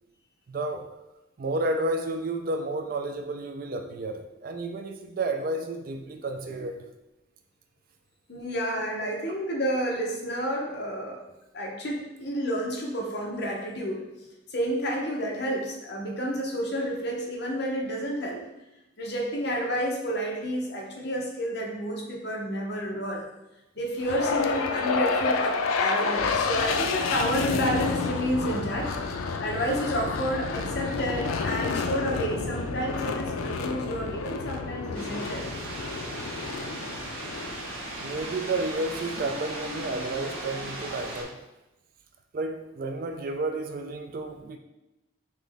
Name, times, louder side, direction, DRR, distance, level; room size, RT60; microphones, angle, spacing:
voice 1, 0.5-0.9 1.4-6.9 38.0-41.4 42.3-44.6, right 2 dB, 45° right, 5 dB, 0.3 m, -31 dB
voice 2, 8.3-11.2 11.5-14.0 14.5-18.4 19.0-23.3 23.8-35.4, equal, 50° left, -1 dB, 0.8 m, -30 dB
sound 1, 24.0-38.2, left 4 dB, 85° left, 0.4 m, -29 dB
sound 2, 34.9-41.2, right 1 dB, 90° right, 1.0 m, -37 dB
3.9 x 3.0 x 3.4 m, 0.96 s
head